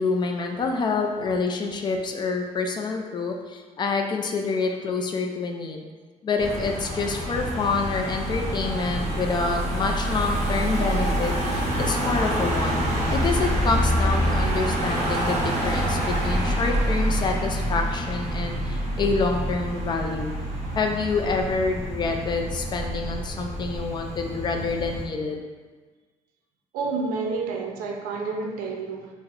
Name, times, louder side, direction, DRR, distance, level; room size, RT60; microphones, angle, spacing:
voice 1, 0.0-5.8 6.2-12.8 13.1-20.3 20.8-25.4, left 4 dB, 30° left, 3 dB, 0.3 m, -27 dB
Car passing by / Engine, 6.4-25.1, right 1 dB, 50° right, 0.8 m, -27 dB
voice 2, 26.7-29.1, right 4 dB, 90° right, 1 dB, 0.5 m, -29 dB
2.8 x 2.0 x 3.8 m, 1.3 s
cardioid pair, 135°, 14 cm